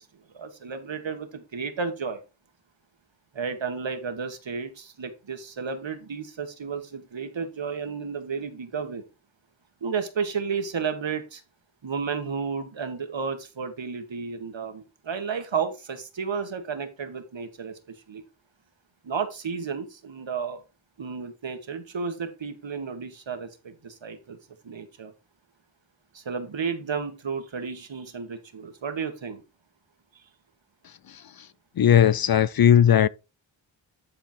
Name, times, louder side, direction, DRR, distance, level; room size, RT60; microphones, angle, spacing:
voice 1, 0.3-2.2 3.3-9.0 9.8-11.4 11.8-18.2 19.0-20.6 21.0-24.4 24.6-25.1 26.1-29.4, right 5 dB, 70° right, 1.7 m, -32 dB
voice 2, 31.8-33.1, left 9 dB, 50° left, 0.5 m, -17 dB
10.5 x 4.5 x 4.4 m
cardioid pair, 55°, 47 cm